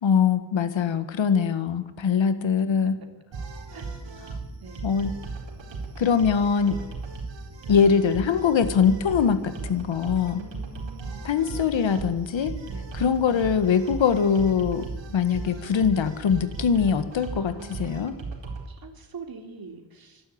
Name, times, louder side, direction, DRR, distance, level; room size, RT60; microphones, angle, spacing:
voice 1, 0.0-3.0 4.8-5.2 6.0-6.8 7.7-10.4 11.2-12.6 12.9-18.2, left 6 dB, 80° left, 11 dB, 1.8 m, -22 dB
voice 2, 2.0-2.7 3.7-3.9 4.6-5.2 9.6-9.8 10.3-11.4 12.7-12.9 17.3-18.2 18.7-20.2, right 5 dB, 50° right, 4 dB, 3.4 m, -45 dB
sound 1, 3.3-18.6, right 4 dB, 75° right, 4.5 m, -37 dB
26.0 x 12.0 x 8.8 m, 1.2 s
wide cardioid pair, 110°, 45 cm